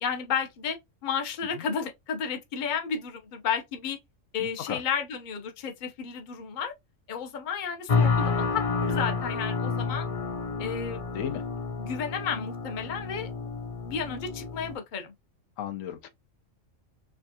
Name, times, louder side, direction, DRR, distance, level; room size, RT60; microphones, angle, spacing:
voice 1, 0.0-4.0 4.3-6.7 7.1-10.1 10.6-11.0 11.8-13.3 13.8-15.1, left 6 dB, 45° left, 0.8 m, -32 dB
voice 2, 4.4-4.8 11.1-11.4 15.6-16.1, left 9 dB, 85° left, 1.0 m, -35 dB
sound 1, 7.9-14.8, left 4 dB, 65° left, 0.3 m, -29 dB
4.4 x 2.4 x 2.7 m
omnidirectional pair, 1.3 m